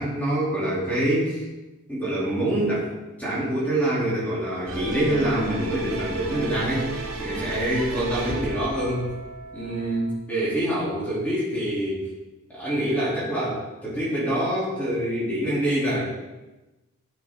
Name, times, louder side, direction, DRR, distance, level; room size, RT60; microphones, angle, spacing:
voice 1, 0.0-1.4 1.9-2.9 3.2-6.9 7.2-9.1 9.5-12.0 12.5-16.1, right 1 dB, 5° left, -8 dB, 3.0 m, -25 dB
Epic Trailer Background Music, 4.7-10.1, right 2 dB, 80° right, 2.0 m, -33 dB
14.0 x 7.6 x 3.8 m, 1.1 s
head